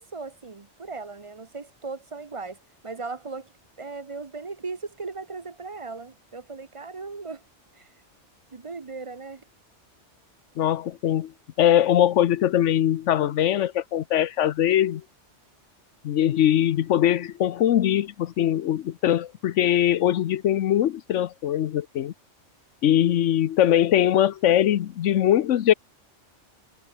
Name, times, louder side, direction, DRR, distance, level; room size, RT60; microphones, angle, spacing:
voice 1, 0.0-3.5 3.8-7.4 7.7-7.9 8.5-9.4, right 4 dB, 30° right, 0.8 m, -37 dB
voice 2, 10.6-11.3 11.6-15.0 16.0-22.1 22.8-25.7, left 11 dB, 90° left, 1.1 m, -21 dB
omnidirectional pair, 1.2 m